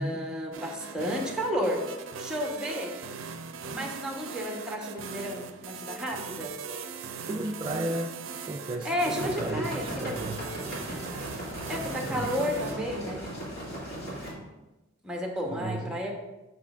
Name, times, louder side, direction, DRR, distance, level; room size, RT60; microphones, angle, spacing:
voice 1, 0.0-1.8 2.2-2.9 3.7-6.5 8.8-9.8 11.7-13.2 15.0-16.1, equal, 5° right, 0 dB, 1.0 m, -32 dB
sound 1, 0.5-12.7, right 5 dB, 90° right, 0.5 m, -40 dB
voice 2, 7.2-8.1 8.4-10.4 12.0-12.4 15.4-16.0, right 2 dB, 25° right, 0 dB, 0.4 m, -34 dB
sound 2, 9.1-14.3, equal, 60° left, 2.2 m, -37 dB
7.2 x 6.2 x 2.4 m, 1.0 s
head